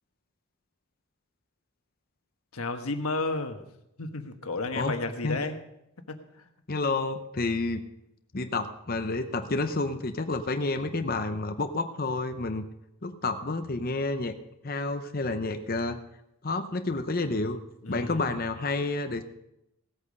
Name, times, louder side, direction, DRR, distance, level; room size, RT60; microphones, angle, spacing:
voice 1, 2.5-3.6 4.0-5.6 6.1-6.5 17.8-18.4, left 3 dB, 75° left, 6 dB, 1.4 m, -32 dB
voice 2, 6.7-7.8 8.3-12.6 13.0-14.3 14.6-16.0 16.4-17.6 17.9-19.2, left 3 dB, 40° left, 8 dB, 0.7 m, -29 dB
17.5 x 8.4 x 5.4 m, 0.84 s
head